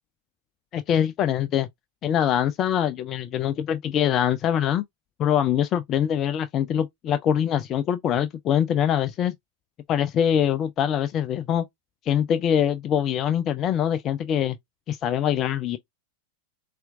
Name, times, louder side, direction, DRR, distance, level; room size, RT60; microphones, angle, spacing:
voice 1, 0.7-1.7 2.0-4.8 5.2-9.3 9.9-11.7 12.0-14.6 14.9-15.8, left 9 dB, 30° left, 0.3 m, -23 dB
4.2 x 2.4 x 2.5 m
figure-of-eight pair, 90°, 0 cm